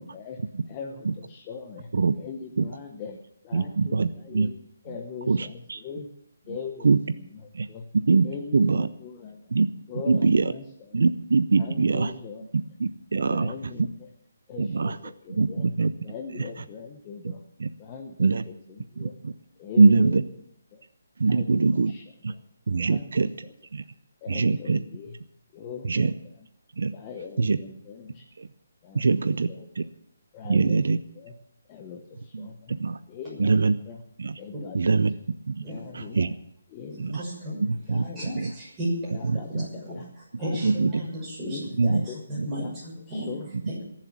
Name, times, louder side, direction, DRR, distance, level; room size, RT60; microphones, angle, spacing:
voice 1, 0.0-0.4 0.7-1.9 2.2-3.2 3.4-4.5 4.8-6.1 6.5-7.4 7.7-7.9 8.2-9.4 9.9-11.1 11.6-12.5 13.1-14.1 14.5-15.7 16.0-17.4 17.8-19.2 19.6-20.3 20.7-20.8 21.3-21.6 21.9-22.4 22.8-23.5 24.2-25.2 25.5-26.1 26.9-28.3 28.8-29.7 30.3-30.8 31.1-31.3 31.7-32.7 33.1-33.5 33.8-34.0 34.4-35.1 35.6-36.3 36.7-37.2 37.9-38.4 39.1-40.1 40.4-41.1 41.4-42.2 42.6-43.5, left 5 dB, 15° left, 2 dB, 1.0 m, -40 dB
voice 2, 3.5-4.5 5.3-5.8 6.8-7.0 7.5-7.7 7.9-8.3 8.5-8.9 9.5-9.7 10.1-10.5 10.9-12.1 12.8-13.5 14.6-15.0 15.3-15.9 17.6-17.7 18.2-18.4 19.0-19.3 19.8-20.2 21.2-21.9 22.2-22.3 22.7-23.3 23.7-23.8 24.3-24.8 25.8-26.1 26.8-26.9 27.4-27.6 28.4-28.5 28.9-29.5 29.8-29.9 30.4-31.0 32.3-33.0 33.4-33.8 34.2-34.4 34.7-35.1 35.5-35.6 35.9-36.3 37.0-37.2 37.6-38.1 38.3-38.5 39.2-39.6 40.6-41.0 41.8-42.0 42.4-42.5, right 4 dB, 70° right, 13 dB, 0.7 m, -23 dB
voice 3, 35.6-36.1 37.1-37.6 38.2-39.1 39.6-40.0 40.4-41.6 42.3-43.3 43.7-43.8, equal, 10° right, -6 dB, 6.4 m, -33 dB
21.0 x 7.6 x 7.4 m, 0.74 s
hypercardioid pair, 175°, 0 cm